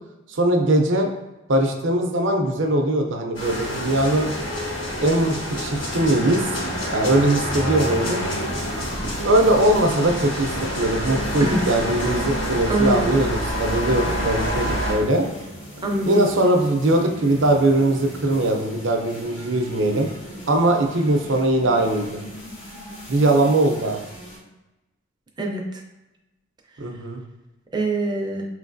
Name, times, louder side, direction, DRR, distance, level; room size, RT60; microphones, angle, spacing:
voice 1, 0.3-1.1 1.5-4.3 5.0-6.5 6.9-8.2 9.2-15.3 16.1-20.1 20.5-22.2 23.1-24.0 26.8-27.2, right 1 dB, 65° right, 3 dB, 0.6 m, -20 dB
sound 1, 3.3-15.0, equal, 65° left, 1.3 m, -27 dB
sound 2, 6.4-24.4, equal, 80° left, 1.4 m, -39 dB
voice 2, 12.7-13.0 15.8-16.2 25.4-25.8 27.7-28.5, right 2 dB, 20° right, 1 dB, 0.5 m, -23 dB
5.1 x 3.1 x 2.6 m, 1.0 s
head